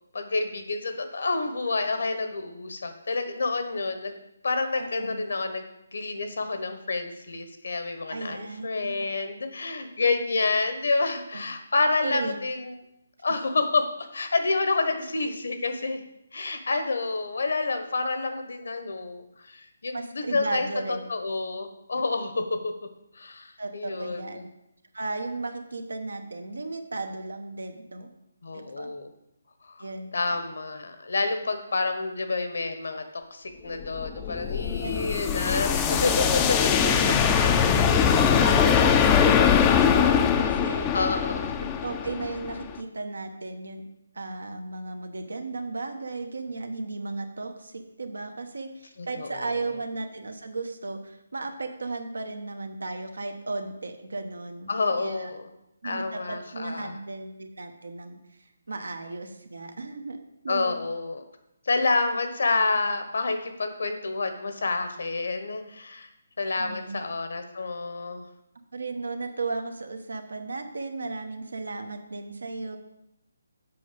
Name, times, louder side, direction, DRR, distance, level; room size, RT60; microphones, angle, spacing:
voice 1, 0.1-4.2 4.4-5.6 5.9-12.7 13.2-16.0 16.3-22.7 23.1-24.4 28.4-29.1 29.6-29.8 30.1-37.0 40.9-41.5 49.0-49.5 54.7-55.4 55.8-56.9 60.5-61.2 61.6-66.1 66.4-68.2, left 3 dB, 70° left, 7 dB, 1.2 m, -28 dB
voice 2, 4.8-5.2 8.1-9.0 11.3-11.4 12.0-12.4 19.9-21.1 21.9-22.0 23.6-24.4 24.9-28.1 28.5-28.9 29.8-30.4 34.8-35.1 36.7-40.9 41.6-43.8 44.1-54.7 55.0-55.3 55.8-58.2 58.7-60.2 60.4-60.9 66.6-67.0 68.7-72.8, right 3 dB, 85° right, 6 dB, 1.1 m, -35 dB
sound 1, 33.8-42.8, left 7 dB, 15° left, 0.5 m, -22 dB
7.6 x 5.4 x 5.1 m, 0.84 s
hypercardioid pair, 160°, 0 cm